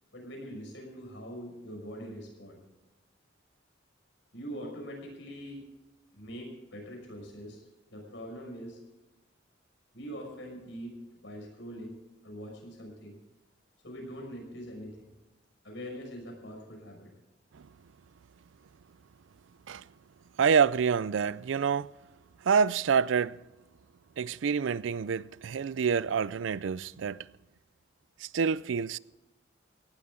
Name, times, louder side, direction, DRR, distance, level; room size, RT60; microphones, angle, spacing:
voice 1, 0.1-2.6 4.3-5.6 6.1-7.6 7.9-8.8 9.9-13.2 13.8-15.1 15.6-17.1, equal, 70° left, 5.9 m, -43 dB
voice 2, 20.4-21.9 22.4-23.4 24.2-27.2 28.2-29.0, right 6 dB, 75° right, 0.4 m, -27 dB
18.0 x 12.5 x 3.8 m
head